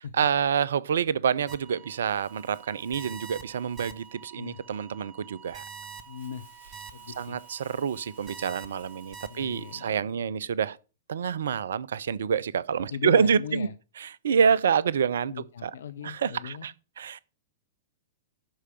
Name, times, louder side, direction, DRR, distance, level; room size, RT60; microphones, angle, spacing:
voice 1, 0.0-5.6 7.2-10.8 11.1-13.7 14.0-15.3 15.6-15.7 16.0-17.2, right 7 dB, 60° right, 0.5 m, -27 dB
sound 1, 1.5-9.9, right 7 dB, 20° right, 1.0 m, -47 dB
Crumpling crinkling, 2.0-9.9, right 1 dB, 90° left, 4.4 m, -59 dB
voice 2, 6.1-6.6 6.9-7.4 9.3-10.2 12.8-13.7 15.3-16.7, left 8 dB, 60° left, 0.5 m, -38 dB
11.5 x 4.7 x 5.9 m
figure-of-eight pair, 105°, 0 cm